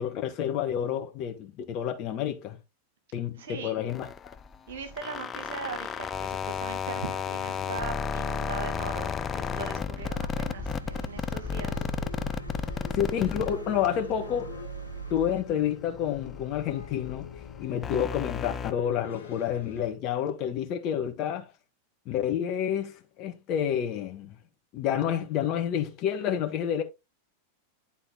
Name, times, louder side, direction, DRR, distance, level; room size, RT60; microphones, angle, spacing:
voice 1, 0.0-2.6 3.1-4.1 12.8-14.6 15.1-17.3 17.6-21.5 22.0-24.4 24.7-26.8, left 9 dB, 40° left, 1.5 m, -29 dB
voice 2, 3.4-3.8 4.7-11.9, right 5 dB, 60° right, 1.7 m, -40 dB
sound 1, 3.9-14.5 14.9-18.7, left 6 dB, 20° left, 0.5 m, -33 dB
sound 2, 6.8-19.9, left 8 dB, 65° left, 2.4 m, -46 dB
sound 3, 10.0-15.4, right 4 dB, 80° right, 0.6 m, -41 dB
10.5 x 4.0 x 3.7 m
figure-of-eight pair, 90°, 0 cm